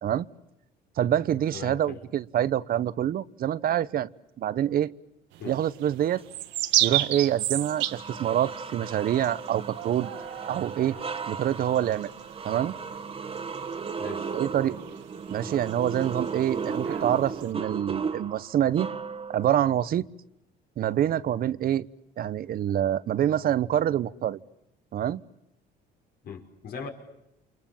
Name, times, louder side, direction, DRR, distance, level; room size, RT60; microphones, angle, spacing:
voice 1, 1.0-4.1 4.4-4.9 5.4-6.2 6.8-10.1 10.5-11.0 11.3-12.1 12.4-12.7 14.3-14.8 15.3-18.9 19.3-20.1 20.8-21.9 22.2-24.4 24.9-25.2, right 11 dB, 55° right, 17 dB, 1.1 m, -26 dB
voice 2, 1.5-2.0 5.4-5.6 14.0-14.3 26.2-26.9, left 6 dB, 60° left, 2 dB, 5.9 m, -39 dB
sound 1, 5.3-17.5, right 15 dB, 85° right, 1.8 m, -33 dB
sound 2, 6.9-7.0 7.6-19.6, right 5 dB, 30° right, 1.9 m, -35 dB
29.5 x 27.5 x 7.3 m, 0.85 s
cardioid pair, 115°, 18 cm